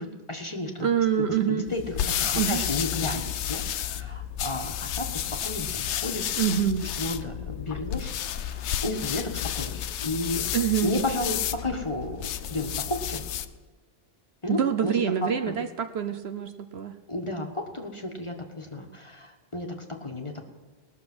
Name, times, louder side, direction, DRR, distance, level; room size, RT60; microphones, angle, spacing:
voice 1, 0.0-0.9 1.2-6.3 7.0-10.5 10.8-13.2 14.4-14.9 15.5-15.6 17.1-17.5 17.7-20.4, left 2 dB, 25° left, 3 dB, 1.3 m, -33 dB
voice 2, 0.8-1.7 2.3-2.6 6.4-6.9 10.5-10.9 14.5-17.0, right 8 dB, 65° right, 8 dB, 0.9 m, -26 dB
sound 1, 1.7-13.6, left 10 dB, 70° left, 0.9 m, -31 dB
19.5 x 6.7 x 6.0 m, 1.3 s
omnidirectional pair, 1.2 m